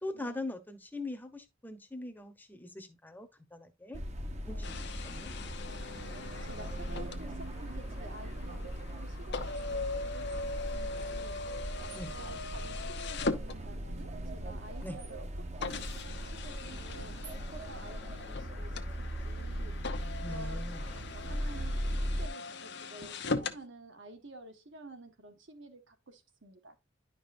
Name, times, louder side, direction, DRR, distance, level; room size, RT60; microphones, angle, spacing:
voice 1, 0.0-4.0 4.4-5.3 11.9-12.1 14.8-15.0 20.2-20.9, left 2 dB, 10° left, 0.9 m, -42 dB
sound 1, 3.9-22.3, equal, 35° right, 1.0 m, -39 dB
voice 2, 4.5-4.8 5.6-6.0 6.4-10.4 10.7-15.3 15.5-17.1 17.5-19.7 20.2-26.8, right 2 dB, 65° right, 1.7 m, -51 dB
sound 2, 4.6-14.1 14.8-14.9 15.6-23.6, left 3 dB, 60° left, 0.9 m, -40 dB
11.0 x 5.2 x 2.6 m
head